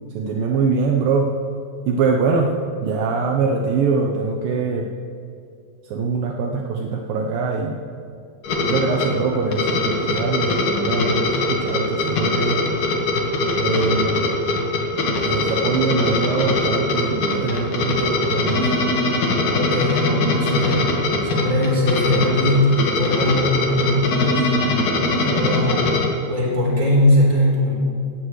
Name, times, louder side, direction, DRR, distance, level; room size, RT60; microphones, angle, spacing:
voice 1, 0.2-1.3 1.9-2.5 2.8-4.9 5.9-7.8 8.6-12.6 13.6-14.2 15.2-18.7, right 4 dB, 80° right, 1 dB, 2.0 m, -23 dB
sound 1, 8.4-26.1, left 2 dB, 55° left, 2.6 m, -22 dB
voice 2, 19.5-20.9 21.2-24.5 25.1-26.0 26.3-27.7, left 1 dB, 20° right, -4 dB, 3.8 m, -20 dB
17.0 x 16.5 x 3.2 m, 2.5 s
omnidirectional pair, 5.2 m